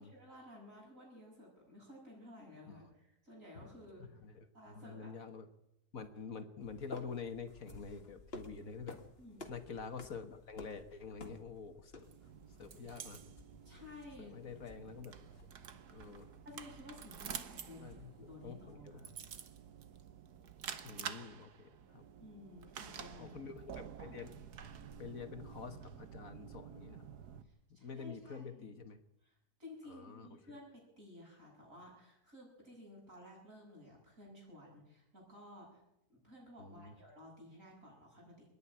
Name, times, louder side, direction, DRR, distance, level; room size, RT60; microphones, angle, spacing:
voice 1, 0.0-4.1 4.5-5.1 9.2-9.4 13.6-14.4 16.4-19.1 22.2-23.6 27.4-28.7 29.2-35.8 36.1-38.5, left 1 dB, 55° right, -2 dB, 8.0 m, -55 dB
voice 2, 4.2-5.5 5.9-9.0 9.5-12.1 12.6-13.2 14.2-15.2 15.9-16.3 17.8-18.1 18.4-19.0 20.8-22.0 23.2-24.4 25.0-27.0 27.8-29.0 29.8-30.6 36.6-37.0, left 5 dB, 60° left, 7 dB, 1.7 m, -47 dB
sound 1, 6.6-18.8, left 3 dB, 40° left, 2.1 m, -55 dB
sound 2, 12.0-27.4, right 8 dB, 80° right, 1.7 m, -50 dB
25.5 x 10.5 x 9.9 m, 0.85 s
omnidirectional pair, 1.7 m